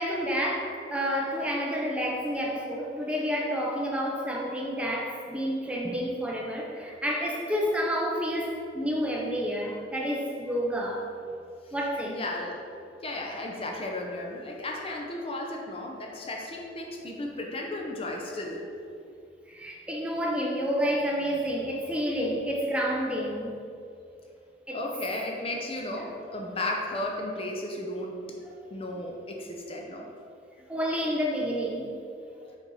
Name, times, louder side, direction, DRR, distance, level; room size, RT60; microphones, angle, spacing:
voice 1, 0.0-11.3 11.7-12.2 19.5-23.6 24.7-24.8 28.4-28.6 30.7-31.9, equal, 5° right, -2 dB, 0.7 m, -29 dB
voice 2, 12.1-12.6 13.0-18.6 24.7-28.2 28.7-30.1, left 1 dB, 30° left, 0 dB, 0.6 m, -34 dB
6.8 x 4.2 x 4.8 m, 2.5 s
head